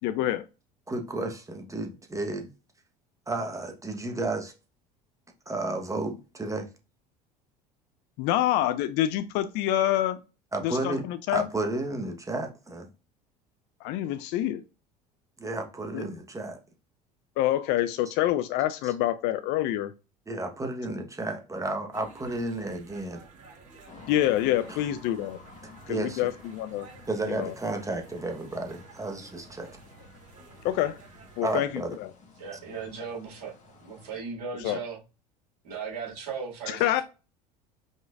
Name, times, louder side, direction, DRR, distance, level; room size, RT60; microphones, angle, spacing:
voice 1, 0.0-0.5 8.2-10.2 10.6-11.5 13.8-14.6 15.9-16.0 17.4-19.9 24.1-25.4 25.9-26.9 27.3-27.5 30.6-31.0 31.4-31.7 32.0-32.1 34.6-34.8 36.7-37.0, left 13 dB, 55° left, 0.5 m, -26 dB
voice 2, 0.9-2.5 3.3-4.5 5.5-6.7 10.5-12.9 15.4-16.6 20.3-23.2 24.7-24.8 25.9-26.3 27.1-29.7 31.4-32.0, right 2 dB, 15° right, 1.1 m, -32 dB
sound 1, 21.9-31.4, right 4 dB, 35° right, 2.6 m, -52 dB
sound 2, 23.9-34.2, left 4 dB, 35° left, 1.4 m, -52 dB
voice 3, 32.4-35.0 35.6-37.0, right 5 dB, 75° right, 2.3 m, -37 dB
5.2 x 3.7 x 2.4 m
hypercardioid pair, 75°, 21 cm